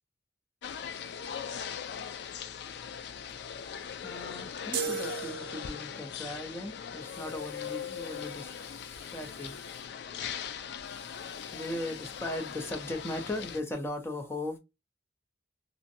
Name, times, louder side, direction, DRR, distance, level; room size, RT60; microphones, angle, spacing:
sound 1, 0.6-13.6, left 7 dB, 60° left, 0.3 m, -40 dB
voice 1, 3.7-9.8 10.9-14.6, left 1 dB, 15° left, 0.7 m, -38 dB
sound 2, 4.7-6.1, right 6 dB, 55° right, 0.5 m, -35 dB
2.6 x 2.2 x 2.6 m
head